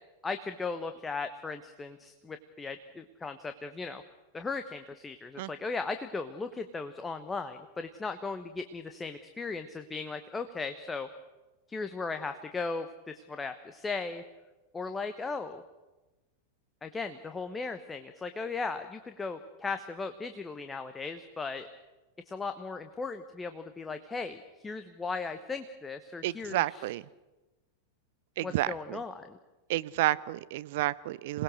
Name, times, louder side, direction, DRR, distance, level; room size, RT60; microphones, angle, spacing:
voice 1, 0.2-4.0 4.3-11.1 11.7-14.2 14.7-15.6 16.8-21.7 22.3-24.4 24.6-26.9 28.4-29.4, left 4 dB, 15° left, 8 dB, 1.2 m, -37 dB
voice 2, 26.2-27.0 28.4-29.0 29.7-31.4, right 16 dB, 50° right, 17 dB, 0.7 m, -30 dB
27.0 x 19.5 x 6.4 m, 1.1 s
figure-of-eight pair, 90°, 0 cm